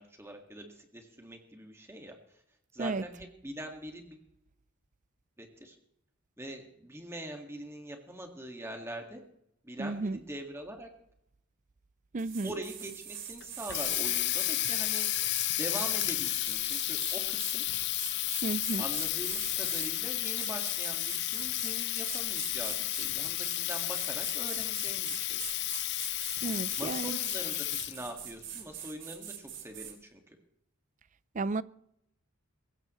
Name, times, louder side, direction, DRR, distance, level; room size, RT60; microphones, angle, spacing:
voice 1, 0.0-2.4 2.7-4.2 5.4-5.8 6.4-9.2 9.6-10.9 12.4-15.1 15.6-17.7 18.8-25.4 26.8-27.6 27.8-30.4, right 1 dB, 10° right, 1.8 m, -43 dB
voice 2, 9.8-10.2 12.1-12.5 18.4-18.9 26.4-27.2 31.3-31.6, right 3 dB, 35° right, 0.4 m, -33 dB
sound 1, 12.2-19.9 20.4-21.8 22.1-29.9, right 9 dB, 55° right, 3.1 m, -44 dB
Water tap faucet, 13.4-28.1, left 16 dB, 50° left, 0.5 m, -32 dB
22.0 x 17.0 x 3.1 m
head